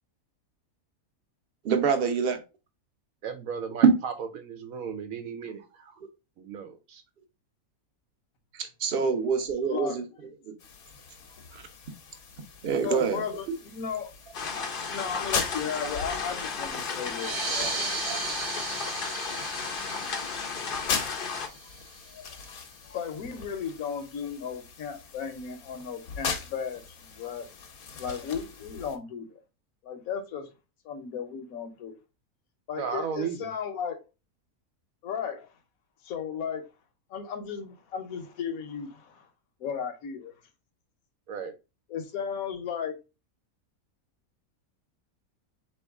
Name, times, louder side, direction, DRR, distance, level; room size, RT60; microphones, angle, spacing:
voice 1, 1.6-2.4 3.8-3.9 8.5-10.0 10.5-10.6 11.5-11.6 12.6-13.5 17.7-18.2, right 6 dB, 50° right, 0.9 m, -25 dB
voice 2, 3.2-5.9 6.4-7.0 32.8-33.5 41.3-41.5, right 7 dB, 75° right, 1.2 m, -35 dB
voice 3, 9.7-10.0 12.8-14.1 14.5-17.7 20.7-21.0 22.1-22.2 22.9-27.5 28.0-29.4 29.8-30.5 30.8-32.0 32.7-34.0 35.0-35.5 36.0-36.7 37.1-39.3 39.6-40.3 41.9-42.9, left 7 dB, 75° left, 1.2 m, -35 dB
sound 1, 10.6-29.0, left 5 dB, 90° left, 1.3 m, -40 dB
sound 2, 14.3-21.5, left 5 dB, 50° left, 0.7 m, -34 dB
sound 3, 17.1-22.2, right 4 dB, 30° right, 0.6 m, -36 dB
4.1 x 3.1 x 3.5 m
omnidirectional pair, 1.5 m